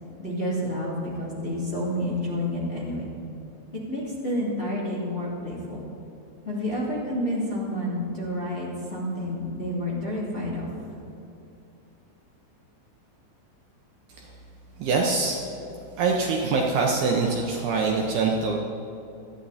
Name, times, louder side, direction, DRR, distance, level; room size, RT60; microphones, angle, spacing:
voice 1, 0.2-3.1 3.7-5.9 6.4-10.7, left 1 dB, 15° left, -7 dB, 2.4 m, -29 dB
voice 2, 14.8-15.4 16.0-18.6, right 4 dB, 70° right, 0 dB, 2.5 m, -24 dB
27.0 x 9.9 x 4.2 m, 2.8 s
omnidirectional pair, 5.2 m